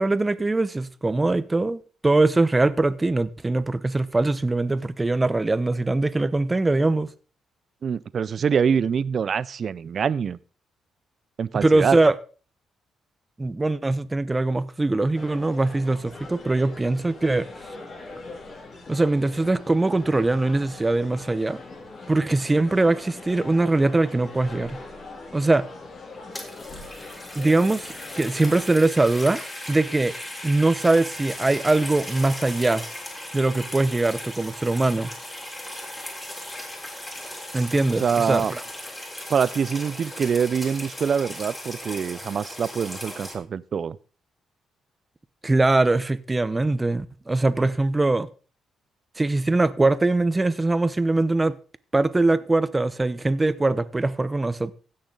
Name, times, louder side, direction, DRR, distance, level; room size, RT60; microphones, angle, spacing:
voice 1, 0.0-7.1 11.5-12.1 13.4-17.5 18.9-21.6 22.1-24.8 25.3-25.7 27.3-29.4 29.7-30.1 30.4-32.8 33.3-35.1 37.5-38.6 45.4-48.3 49.2-51.6 51.9-54.7, right 2 dB, 20° right, 0.7 m, -22 dB
voice 2, 7.8-10.4 11.4-12.0 38.0-38.5 39.3-44.0, right 7 dB, 50° right, 0.5 m, -24 dB
sound 1, 15.1-28.7, left 3 dB, 45° left, 2.7 m, -41 dB
sound 2, 26.1-43.4, left 1 dB, 15° left, 3.5 m, -37 dB
16.0 x 6.5 x 3.8 m
cardioid pair, 90°, 0 cm